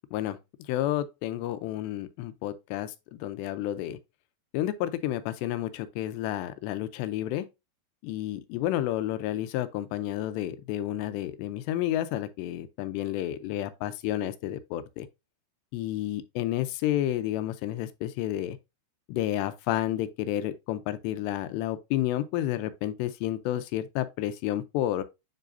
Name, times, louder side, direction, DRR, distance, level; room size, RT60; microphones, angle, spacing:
voice 1, 0.7-4.0 4.5-7.5 8.0-15.1 15.7-18.6 19.1-25.0, left 13 dB, 80° left, 2.7 m, -30 dB
9.2 x 4.0 x 2.5 m
omnidirectional pair, 5.1 m